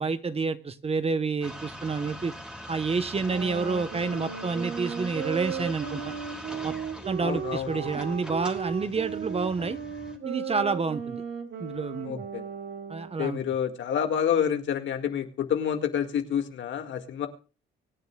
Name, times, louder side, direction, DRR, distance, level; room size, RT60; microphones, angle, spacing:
voice 1, 0.0-2.3 2.7-6.1 6.6-6.7 7.1-9.8 10.2-11.2 11.6-12.2 12.9-13.4, right 4 dB, 30° right, 12 dB, 1.0 m, -29 dB
sound 1, 1.4-10.2, equal, 5° right, 2.7 m, -42 dB
sound 2, 3.3-13.2, right 7 dB, 65° right, 2.6 m, -36 dB
voice 2, 7.2-7.9 12.0-12.4 13.2-17.3, left 8 dB, 70° left, 6 dB, 2.0 m, -28 dB
24.5 x 9.5 x 2.4 m, 0.35 s
cardioid pair, 90°, 20 cm